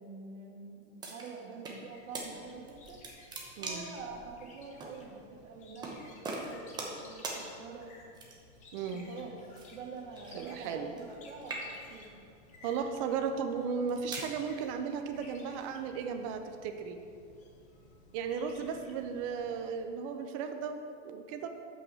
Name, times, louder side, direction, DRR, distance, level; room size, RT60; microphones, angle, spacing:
voice 1, 0.0-3.0 3.6-7.9 8.7-9.4 9.7-12.2, right 4 dB, 75° right, 1 dB, 1.7 m, -47 dB
sound 1, 1.0-1.8 2.1-2.3 2.7-4.0 4.8-4.9 5.8-6.0 6.2-7.0 7.2-7.4 8.1-8.6 9.5-11.2 11.4-12.0 12.7-12.9 13.6-14.3, right 3 dB, 10° right, 0.9 m, -41 dB
sound 2, 1.9-19.9, left 2 dB, 20° left, 0.9 m, -57 dB
voice 2, 3.6-3.9 8.7-9.1 10.3-10.9 12.6-17.0 18.1-21.5, right 6 dB, 30° right, 6 dB, 0.4 m, -35 dB
6.4 x 6.1 x 6.7 m, 2.5 s
supercardioid pair, 155°, 37 cm